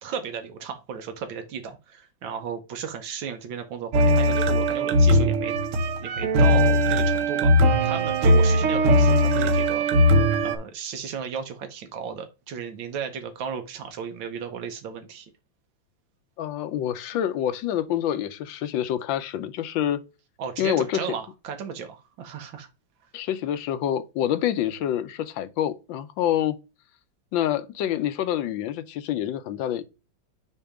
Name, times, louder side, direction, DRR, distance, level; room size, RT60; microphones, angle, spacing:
voice 1, 0.0-5.5 6.0-9.9 10.4-15.3 20.4-22.7, right 6 dB, 90° right, 1.7 m, -35 dB
sound 1, 3.9-10.6, equal, 55° right, 0.9 m, -19 dB
voice 2, 16.4-20.0 20.6-21.0 23.1-26.6 27.3-29.9, left 11 dB, 85° left, 1.4 m, -27 dB
6.8 x 2.8 x 4.9 m
omnidirectional pair, 2.1 m